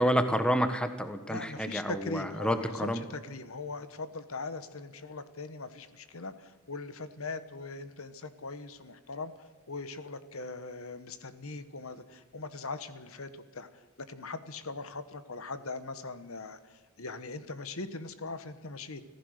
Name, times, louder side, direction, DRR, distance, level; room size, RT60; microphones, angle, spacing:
voice 1, 0.0-3.0, equal, 5° left, 9 dB, 1.3 m, -29 dB
voice 2, 1.3-19.1, left 3 dB, 65° left, 12 dB, 1.3 m, -41 dB
26.0 x 15.0 x 6.6 m, 1.4 s
head